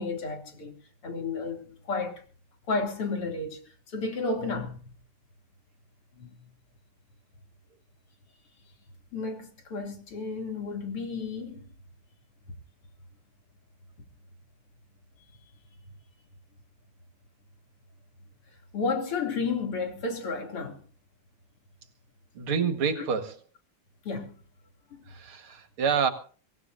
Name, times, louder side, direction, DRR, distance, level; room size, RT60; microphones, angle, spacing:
voice 1, 0.0-2.2 2.7-4.8 6.2-6.4 9.1-11.7 18.7-20.8 24.1-24.3 24.9-25.0, left 4 dB, 85° left, 3.9 m, -32 dB
voice 2, 22.3-23.4 25.1-26.1, right 6 dB, 75° right, 2.7 m, -28 dB
25.0 x 18.0 x 2.7 m
omnidirectional pair, 2.4 m